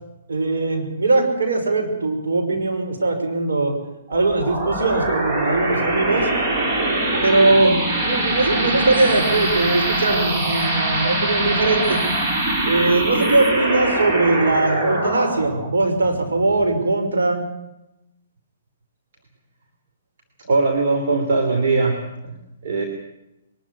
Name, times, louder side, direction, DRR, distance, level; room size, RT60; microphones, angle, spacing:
voice 1, 0.3-3.8 4.1-6.3 7.2-12.0 12.6-17.4, right 2 dB, 85° right, 4 dB, 5.8 m, -20 dB
sound 1, 4.1-17.2, right 2 dB, 40° right, 5.9 m, -23 dB
voice 2, 20.4-22.3 22.6-22.8, right 3 dB, 60° right, 4 dB, 3.3 m, -20 dB
22.5 x 13.5 x 9.8 m, 0.91 s
hypercardioid pair, 140°, 0 cm